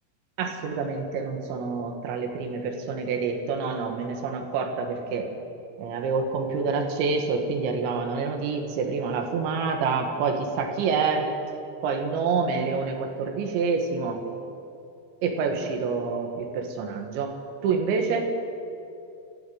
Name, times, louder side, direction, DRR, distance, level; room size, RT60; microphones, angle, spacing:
voice 1, 0.4-5.3 5.8-11.3 11.8-14.2 15.2-17.4 17.6-18.3, right 5 dB, 80° right, 3 dB, 4.2 m, -27 dB
25.5 x 13.5 x 9.5 m, 2.6 s
omnidirectional pair, 5.2 m